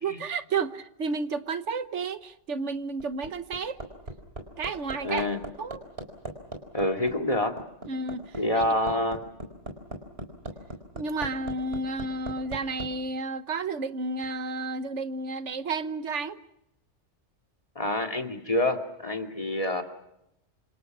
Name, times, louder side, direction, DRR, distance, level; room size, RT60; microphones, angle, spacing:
voice 1, 0.0-3.8 4.6-5.3 5.6-5.8 7.9-8.6 10.9-16.4, right 3 dB, 85° right, 11 dB, 1.5 m, -31 dB
Hammer, 2.7-12.9 14.2-14.3, right 1 dB, 60° right, 4.7 m, -39 dB
voice 2, 5.0-5.4 6.7-7.5 8.3-9.2 17.8-19.8, left 1 dB, 30° left, 4 dB, 2.6 m, -27 dB
28.0 x 26.0 x 6.1 m, 0.82 s
omnidirectional pair, 1.2 m